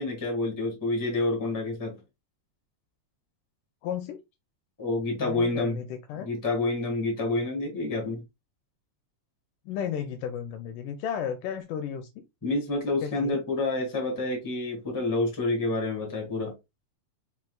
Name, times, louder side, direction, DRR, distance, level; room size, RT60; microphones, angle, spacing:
voice 1, 0.0-1.9 4.8-5.8 6.2-8.2 12.4-16.5, left 2 dB, 10° left, 1.0 m, -28 dB
voice 2, 3.8-4.2 5.2-6.3 9.7-12.2 13.0-13.4, left 8 dB, 80° left, 2.0 m, -34 dB
4.7 x 4.4 x 2.3 m
omnidirectional pair, 4.0 m